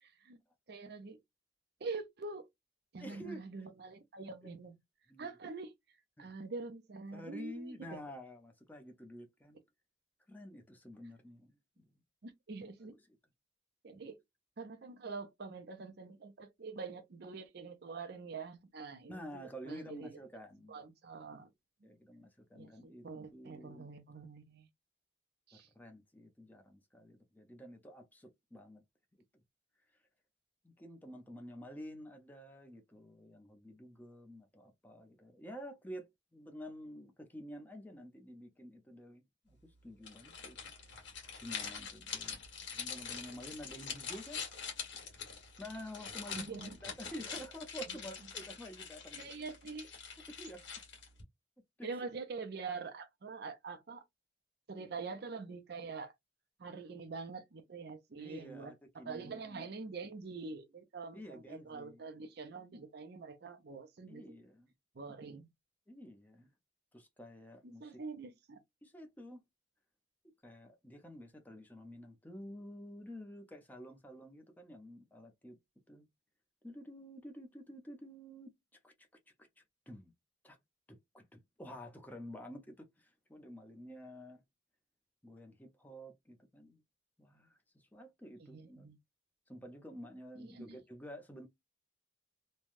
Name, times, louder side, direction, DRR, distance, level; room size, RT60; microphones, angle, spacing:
voice 1, 0.0-0.4 0.7-1.2 1.8-2.5 2.9-4.8 5.2-5.7 6.2-8.0 12.2-12.9 13.8-14.2 14.6-20.2 20.7-21.5 22.5-24.7 25.5-25.7 46.3-46.8 47.9-48.1 49.1-49.9 51.8-54.1 54.7-56.1 56.6-64.3 64.9-65.5 67.6-68.6 88.4-89.0 90.4-90.8, right 4 dB, 55° right, 0.5 m, -45 dB
voice 2, 3.0-3.4 5.1-5.3 6.2-6.3 7.1-9.6 10.3-11.8 19.1-20.8 21.8-23.1 23.3-23.9 25.5-28.8 30.6-40.7 41.4-42.4 42.7-44.4 45.6-46.5 46.8-49.3 50.3-50.6 51.8-51.9 58.2-59.6 61.1-62.0 64.1-64.7 65.9-66.5 66.9-67.9 68.8-69.4 70.4-75.6 75.9-76.1 76.6-78.5 78.8-78.9 79.4-79.5 79.9-80.1 80.4-80.6 80.9-84.4 85.2-86.8 87.2-88.9 89.5-91.5, equal, 10° left, 0.6 m, -50 dB
sound 1, 40.0-51.2, left 6 dB, 70° left, 1.4 m, -44 dB
3.2 x 2.2 x 2.5 m
head